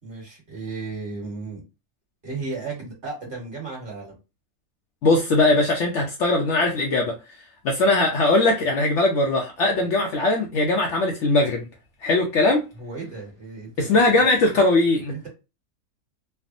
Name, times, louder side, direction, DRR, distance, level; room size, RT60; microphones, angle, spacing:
voice 1, 0.0-1.6 2.2-4.2 9.8-9.9 12.7-14.0 15.1-15.3, right 3 dB, 35° right, 1.4 m, -34 dB
voice 2, 5.0-7.1 7.6-11.7 12.0-12.6 13.8-15.1, left 2 dB, 65° left, 0.8 m, -20 dB
3.3 x 2.0 x 2.5 m
omnidirectional pair, 1.5 m